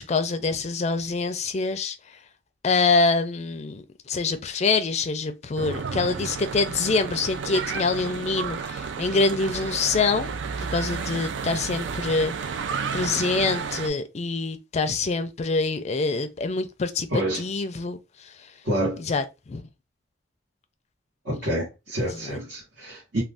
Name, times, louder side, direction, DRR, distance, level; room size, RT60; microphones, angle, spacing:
voice 1, 0.0-2.0 2.6-10.3 10.6-12.3 12.9-18.0 19.1-19.6 22.1-22.4, left 3 dB, 35° left, 0.4 m, -25 dB
Church bell / Traffic noise roadway noise, 5.6-13.9, right 5 dB, 80° right, 0.4 m, -32 dB
voice 2, 17.1-17.4 18.6-19.0 21.2-23.2, right 1 dB, 65° right, 1.1 m, -27 dB
2.5 x 2.3 x 3.4 m
head